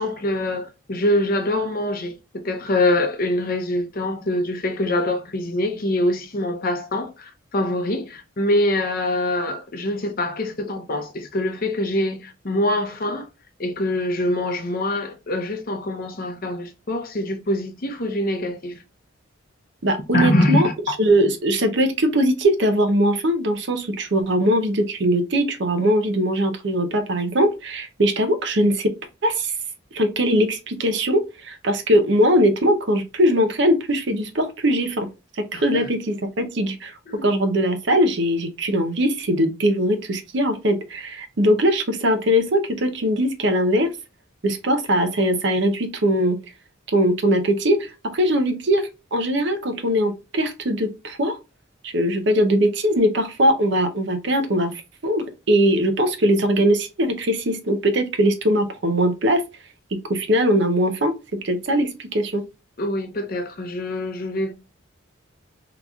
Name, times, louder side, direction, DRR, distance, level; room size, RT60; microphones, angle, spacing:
voice 1, 0.0-2.1 2.4-13.3 13.6-18.8 20.1-20.6 35.5-35.9 37.1-37.3 62.8-64.5, left 1 dB, 45° left, 0.6 m, -24 dB
voice 2, 19.8-20.7 21.0-28.9 29.2-29.5 29.9-35.1 35.4-36.9 37.2-43.9 44.4-46.4 46.9-51.4 51.8-54.7 55.0-59.4 60.1-61.1 61.4-62.4, equal, 60° right, 0.6 m, -21 dB
3.8 x 2.9 x 2.3 m
head